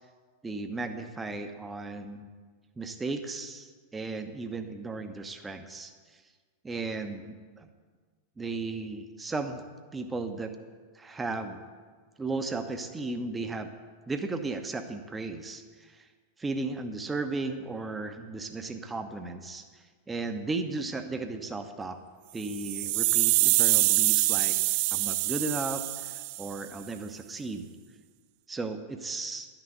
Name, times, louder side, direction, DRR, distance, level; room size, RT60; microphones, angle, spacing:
voice 1, 0.4-2.3 2.8-6.2 6.6-7.7 8.4-9.6 9.9-10.5 10.9-11.6 12.2-13.7 14.1-16.1 16.4-22.0 22.3-24.6 24.9-26.1 26.4-27.7 28.5-29.5, right 3 dB, 15° right, 8 dB, 0.9 m, -35 dB
sound 1, 22.4-26.6, right 19 dB, 45° right, 0.4 m, -25 dB
11.5 x 6.1 x 8.0 m, 1.5 s
figure-of-eight pair, 90°, 0 cm